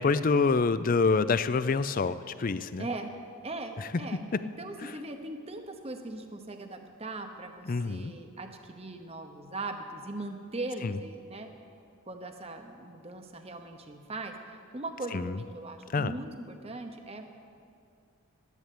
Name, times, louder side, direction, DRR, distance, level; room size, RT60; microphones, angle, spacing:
voice 1, 0.0-2.9 3.8-3.9 4.8-4.9 7.7-8.1 10.8-11.0 15.1-15.4 15.9-16.1, left 4 dB, 40° left, 14 dB, 0.4 m, -26 dB
voice 2, 2.8-3.1 3.4-4.2 4.6-11.5 12.1-17.3, right 2 dB, 25° right, 5 dB, 0.9 m, -40 dB
12.5 x 11.0 x 8.5 m, 2.4 s
head